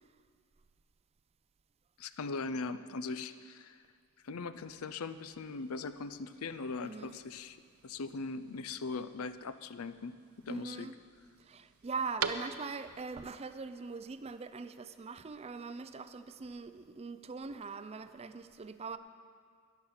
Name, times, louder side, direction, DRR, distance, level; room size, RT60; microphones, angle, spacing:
voice 1, 2.0-3.8 4.2-7.6 7.8-10.1 10.4-10.9, left 4 dB, 75° left, 12 dB, 0.5 m, -40 dB
sound 1, 4.5-13.0, right 6 dB, 80° right, 0.6 m, -46 dB
voice 2, 6.8-7.2 10.5-10.9 11.5-19.0, right 4 dB, 30° right, 12 dB, 0.4 m, -42 dB
13.0 x 11.0 x 5.7 m, 2.1 s
head